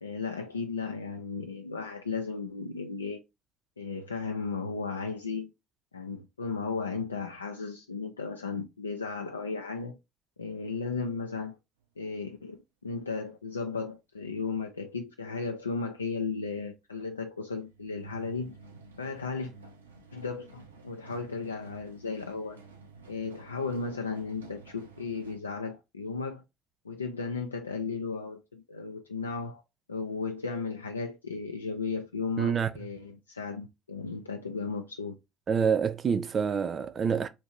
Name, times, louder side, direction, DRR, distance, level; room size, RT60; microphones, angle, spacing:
voice 1, 0.0-3.2 3.8-5.5 5.9-10.0 10.4-11.6 12.0-18.6 19.0-19.5 20.1-22.6 23.1-26.4 26.8-29.6 29.9-35.2, left 4 dB, 85° left, 0.3 m, -35 dB
sound 1, 17.4-25.4, right 4 dB, 85° right, 0.5 m, -52 dB
voice 2, 32.4-32.7 35.5-37.3, right 6 dB, 40° right, 0.5 m, -27 dB
2.9 x 2.6 x 4.3 m
figure-of-eight pair, 55°, 0 cm